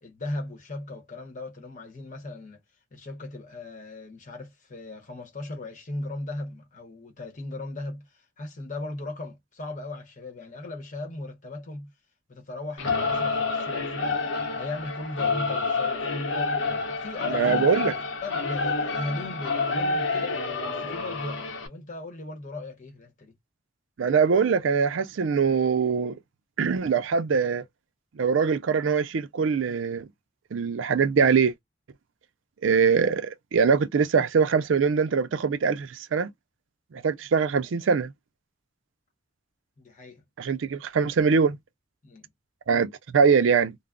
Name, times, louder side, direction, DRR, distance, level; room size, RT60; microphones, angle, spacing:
voice 1, 0.0-2.6 2.9-11.9 12.3-14.2 14.6-16.3 16.9-17.9 18.2-20.4 20.7-23.4 39.8-40.2 42.0-42.3, left 2 dB, 40° left, 0.8 m, -37 dB
Singing / Musical instrument, 12.8-21.7, left 3 dB, 85° left, 0.8 m, -28 dB
voice 2, 17.3-17.9 24.0-26.2 26.6-27.6 28.2-30.1 30.5-31.5 32.6-36.3 36.9-38.1 40.4-41.6 42.7-43.8, right 6 dB, 85° right, 0.4 m, -23 dB
2.3 x 2.0 x 3.6 m
head